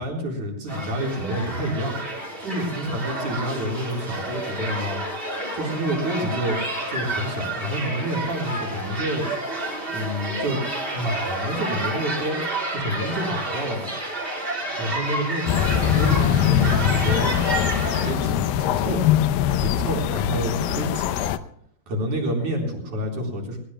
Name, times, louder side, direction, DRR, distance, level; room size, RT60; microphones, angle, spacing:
voice 1, 0.0-2.0 2.4-5.0 5.5-6.6 6.9-9.3 9.9-10.6 10.9-12.4 12.7-13.9 14.8-17.3 17.9-19.0 19.6-21.2 21.9-23.6, equal, 55° right, 0 dB, 5.3 m, -28 dB
sound 1, 0.7-18.1, right 1 dB, 15° right, 3.9 m, -30 dB
sound 2, 15.5-21.4, left 10 dB, 75° left, 2.4 m, -22 dB
21.5 x 20.5 x 2.2 m, 0.69 s
omnidirectional pair, 4.3 m